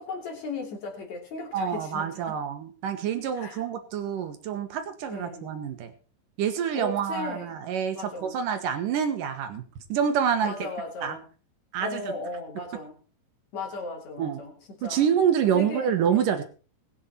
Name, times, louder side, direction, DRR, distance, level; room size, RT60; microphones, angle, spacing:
voice 1, 0.1-2.4 3.4-3.6 5.1-5.6 6.7-7.6 7.9-8.4 10.4-11.3 11.8-13.0 13.5-15.0 15.5-16.4, left 3 dB, 40° left, 1 dB, 3.8 m, -36 dB
voice 2, 1.5-5.9 6.4-9.6 9.9-10.7 11.0-11.2 11.7-12.1 14.2-14.4 14.8-16.4, right 8 dB, 65° right, 8 dB, 2.3 m, -27 dB
20.5 x 8.0 x 4.4 m, 0.38 s
omnidirectional pair, 5.1 m